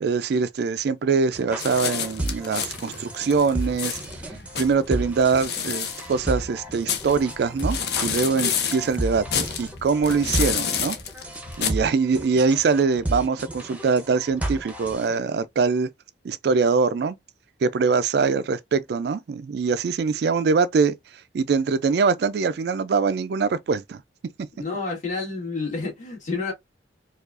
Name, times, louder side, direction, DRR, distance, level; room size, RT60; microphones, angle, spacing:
voice 1, 0.0-4.0 4.3-11.0 11.6-15.9 16.2-17.2 17.6-20.9 21.3-24.0 24.4-24.5, right 5 dB, 60° right, 0.3 m, -23 dB
sound 1, 1.3-15.2, right 1 dB, 10° right, 0.7 m, -32 dB
sound 2, 1.6-11.7, left 7 dB, 60° left, 0.7 m, -30 dB
voice 2, 24.6-26.5, left 3 dB, 40° left, 1.9 m, -29 dB
4.5 x 2.4 x 2.4 m
head